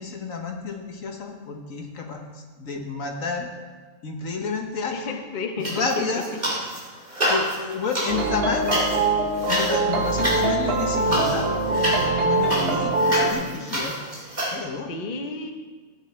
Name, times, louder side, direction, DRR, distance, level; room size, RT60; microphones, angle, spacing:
voice 1, 0.0-2.2 2.6-3.5 4.0-5.2 5.6-6.2 7.3-9.1 9.5-14.0 14.5-14.9, left 4 dB, 70° left, 2 dB, 1.6 m, -30 dB
voice 2, 4.9-6.1 14.9-15.5, left 4 dB, 40° left, 4 dB, 0.9 m, -31 dB
sound 1, 5.6-6.8 7.1-14.5, equal, 30° right, 2.6 m, -28 dB
sound 2, 8.1-13.3, right 2 dB, 45° right, 1.3 m, -23 dB
13.5 x 9.4 x 4.3 m, 1.4 s
omnidirectional pair, 1.5 m